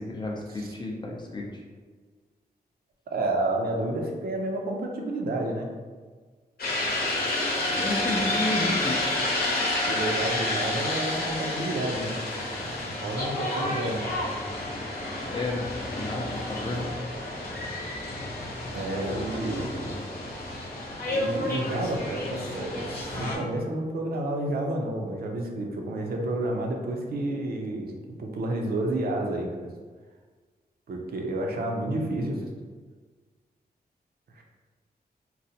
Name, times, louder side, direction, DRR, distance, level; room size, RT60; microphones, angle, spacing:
voice 1, 0.0-1.6 7.8-9.0 15.3-16.9, left 2 dB, 25° left, -2 dB, 0.4 m, -32 dB
voice 2, 3.1-5.7 7.7-8.1 9.9-12.2 12.7-14.1 18.7-19.9 20.9-29.7 30.9-32.5 34.3-34.4, right 1 dB, 65° right, 1 dB, 0.5 m, -30 dB
sound 1, 6.6-23.4, left 1 dB, 70° left, 0.8 m, -30 dB
3.9 x 2.1 x 2.7 m, 1.5 s
wide cardioid pair, 170°, 17 cm